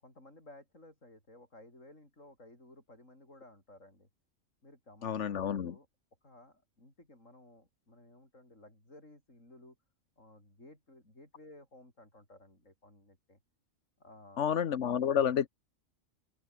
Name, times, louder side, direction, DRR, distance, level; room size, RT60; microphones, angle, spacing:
voice 1, 0.0-4.1 4.6-5.9 6.2-9.8 10.2-13.4 14.0-14.4, left 1 dB, 85° left, 8.6 m, -56 dB
voice 2, 5.0-5.7 14.4-15.5, left 8 dB, 70° left, 1.3 m, -30 dB
open air
omnidirectional pair, 1.3 m